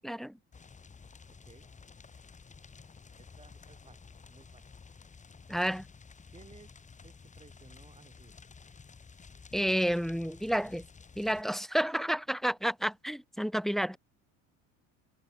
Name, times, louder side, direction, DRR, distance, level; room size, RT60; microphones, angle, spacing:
voice 1, 0.0-0.4 5.5-5.8 9.5-10.8 11.2-14.0, equal, ahead, 0.3 m, -30 dB
sound 1, 0.5-11.4, left 5 dB, 20° left, 3.0 m, -53 dB
voice 2, 1.3-1.7 3.1-4.7 6.3-6.7 7.0-8.3, right 4 dB, 20° right, 4.4 m, -58 dB
supercardioid pair, 105°, 34 cm